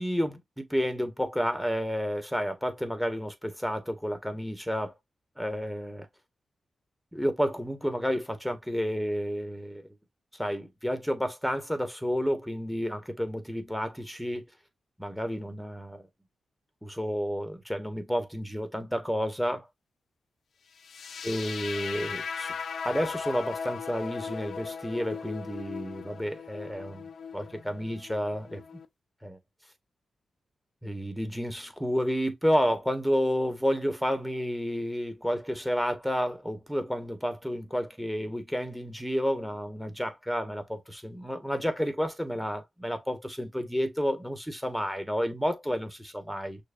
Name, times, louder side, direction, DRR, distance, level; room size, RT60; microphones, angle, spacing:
voice 1, 0.0-4.9 5.4-6.1 7.1-9.9 10.4-14.4 15.0-16.1 16.8-19.7 21.2-22.5 22.8-27.1 27.3-28.8 29.2-29.4 30.8-46.6, equal, ahead, 1.6 m, -30 dB
sound 1, 20.8-28.9, left 6 dB, 75° left, 0.6 m, -38 dB
6.3 x 2.7 x 2.6 m
cardioid pair, 60°, 0 cm